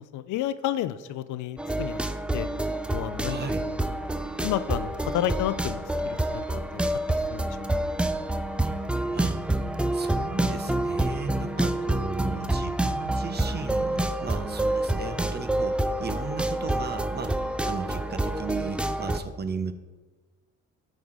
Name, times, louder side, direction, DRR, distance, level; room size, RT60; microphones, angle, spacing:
voice 1, 0.0-2.0 2.3-2.5 2.9-3.4 3.6-3.7 4.4-7.5, left 12 dB, 80° left, 14 dB, 0.5 m, -31 dB
sound 1, 1.6-19.2, right 1 dB, 5° right, 0.4 m, -28 dB
voice 2, 3.3-3.6 9.1-9.4 9.9-19.7, right 5 dB, 35° right, 10 dB, 0.7 m, -36 dB
12.0 x 4.0 x 4.9 m, 1.2 s
cardioid pair, 90°, 30 cm